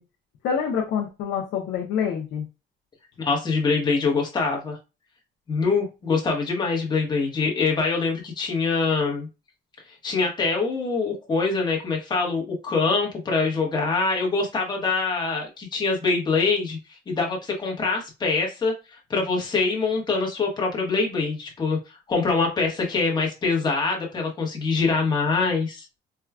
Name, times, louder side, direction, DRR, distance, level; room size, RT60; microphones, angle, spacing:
voice 1, 0.4-2.5, left 7 dB, 60° left, -2 dB, 0.7 m, -26 dB
voice 2, 3.2-4.8 5.5-9.3 10.0-16.8 17.1-21.8 22.1-25.8, left 4 dB, 20° left, 0 dB, 1.0 m, -24 dB
4.5 x 2.2 x 2.3 m, 0.28 s
cardioid pair, 175°, 21 cm